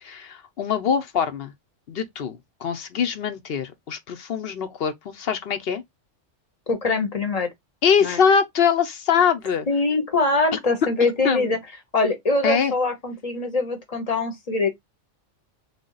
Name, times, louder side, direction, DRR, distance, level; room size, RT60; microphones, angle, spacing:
voice 1, 0.0-1.5 1.9-5.8 7.8-9.7 10.5-10.6 11.2-11.6 12.4-12.7, left 7 dB, 60° left, 0.8 m, -23 dB
voice 2, 6.7-7.5 8.0-8.2 9.7-11.6 11.9-14.7, left 3 dB, 35° left, 0.9 m, -23 dB
3.4 x 2.3 x 3.8 m
omnidirectional pair, 1.3 m